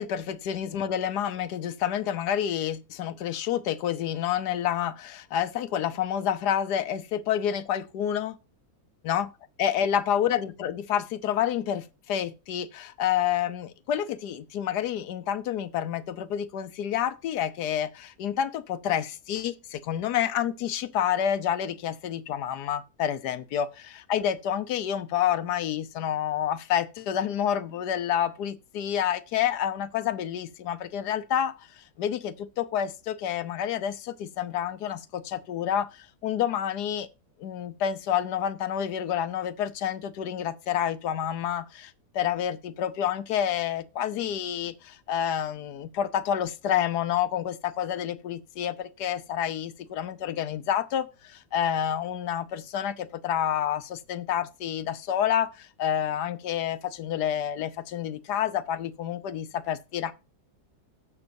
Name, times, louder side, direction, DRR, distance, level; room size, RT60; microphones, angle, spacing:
voice 1, 0.0-8.4 9.0-9.3 9.6-37.1 37.4-60.1, left 9 dB, 80° left, 1.3 m, -29 dB
17.0 x 6.1 x 2.6 m
omnidirectional pair, 1.7 m